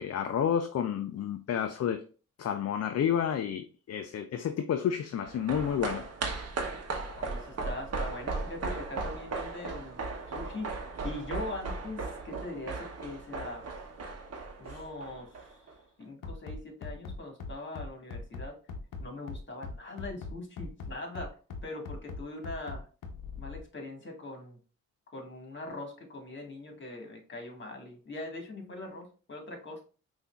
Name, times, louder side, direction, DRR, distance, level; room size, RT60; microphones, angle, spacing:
voice 1, 0.0-2.0 2.4-6.0 14.7-14.8, left 8 dB, 55° left, 0.5 m, -30 dB
sound 1, 5.1-15.7 16.0-16.1, right 3 dB, 50° right, 0.9 m, -37 dB
voice 2, 7.2-10.0 10.3-10.7 11.0-13.6 14.6-15.6 16.0-18.6 19.0-21.4 21.6-22.9 23.4-24.6 25.1-29.8, left 2 dB, 35° left, 1.7 m, -41 dB
Bass drum, 16.2-23.6, left 3 dB, 85° left, 0.8 m, -40 dB
5.5 x 2.6 x 2.3 m
cardioid pair, 70°, 31 cm